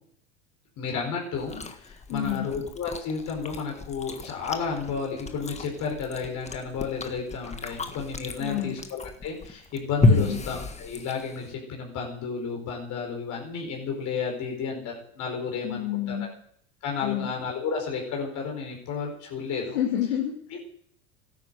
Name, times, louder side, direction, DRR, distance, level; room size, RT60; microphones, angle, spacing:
voice 1, 0.8-16.2 16.8-19.8, left 5 dB, 45° left, 0 dB, 4.6 m, -32 dB
Chewing mastication, 1.4-11.5, left 2 dB, 15° left, 1.6 m, -31 dB
voice 2, 2.1-2.5 8.4-8.8 10.1-10.4 15.6-16.3 17.0-17.3 19.7-20.6, left 10 dB, 80° left, -3 dB, 3.0 m, -29 dB
13.0 x 11.0 x 7.9 m, 0.66 s
hypercardioid pair, 100°, 39 cm